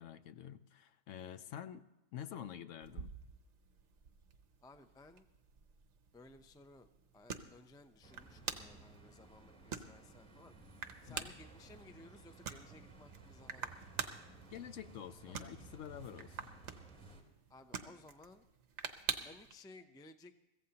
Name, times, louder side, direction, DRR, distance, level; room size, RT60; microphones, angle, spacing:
voice 1, 0.0-3.2 11.1-11.3 14.5-16.5, left 9 dB, 70° left, 1.0 m, -48 dB
sound 1, 2.8-19.5, right 6 dB, 60° right, 1.2 m, -48 dB
voice 2, 4.6-5.3 6.1-10.5 11.0-13.8 15.3-15.4 17.5-18.5 19.1-20.3, left 2 dB, 5° left, 0.3 m, -58 dB
sound 2, 8.0-17.2, right 3 dB, 25° right, 2.5 m, -57 dB
23.0 x 15.5 x 2.9 m
omnidirectional pair, 1.4 m